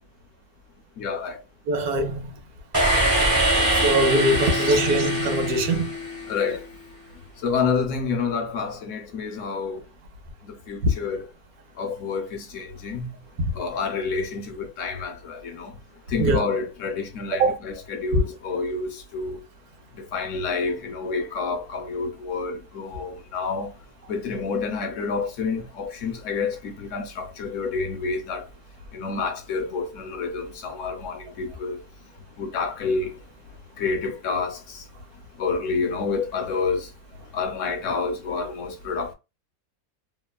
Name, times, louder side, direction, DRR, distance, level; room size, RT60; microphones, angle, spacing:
voice 1, 1.0-1.4 4.5-4.8 6.3-6.6 7.4-9.8 10.7-11.2 11.8-13.1 13.5-15.7 16.1-19.4 20.1-23.7 24.1-28.4 28.9-31.8 32.4-33.2 33.8-34.8 35.4-36.9 37.3-39.1, left 4 dB, 65° left, 0.9 m, -28 dB
voice 2, 1.7-2.3 3.8-5.9 10.8-10.9 16.2-16.4 17.4-17.6, right 1 dB, 75° right, 1.1 m, -22 dB
sound 1, 2.7-6.6, right 1 dB, 20° right, 0.8 m, -23 dB
2.9 x 2.2 x 2.2 m
omnidirectional pair, 1.6 m